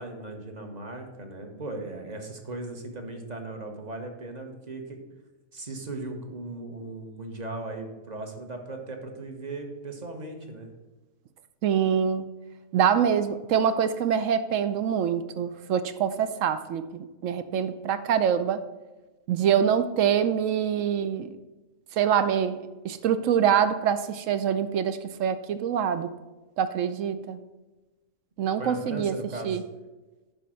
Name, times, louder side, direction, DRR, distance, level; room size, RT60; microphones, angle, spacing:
voice 1, 0.0-5.0 5.5-10.7 28.6-29.6, right 2 dB, 30° right, 4 dB, 1.1 m, -37 dB
voice 2, 11.6-12.3 12.7-18.6 19.3-21.3 22.0-26.1 26.6-27.4 28.4-29.1 29.4-29.6, right 8 dB, 65° right, 11 dB, 0.8 m, -25 dB
10.5 x 4.3 x 6.2 m, 1.1 s
omnidirectional pair, 1.6 m